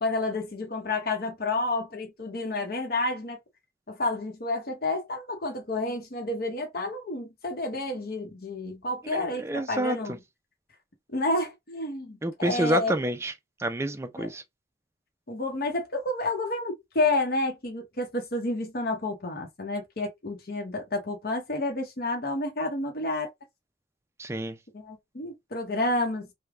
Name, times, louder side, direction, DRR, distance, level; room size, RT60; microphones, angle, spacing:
voice 1, 0.0-3.4 3.9-10.2 11.1-12.9 14.2-14.3 15.3-23.3 24.7-26.3, left 2 dB, 55° left, 0.8 m, -30 dB
voice 2, 9.1-10.0 12.2-13.3 13.6-14.4 24.2-24.6, right 1 dB, 15° right, 0.4 m, -28 dB
3.4 x 2.2 x 3.4 m
head